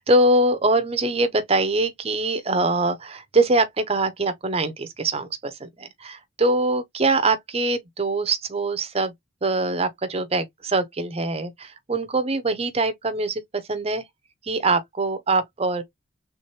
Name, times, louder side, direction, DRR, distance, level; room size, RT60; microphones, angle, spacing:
voice 1, 0.1-9.1 9.4-14.0 14.4-15.8, right 2 dB, 30° right, 0.6 m, -23 dB
3.5 x 3.1 x 2.8 m
head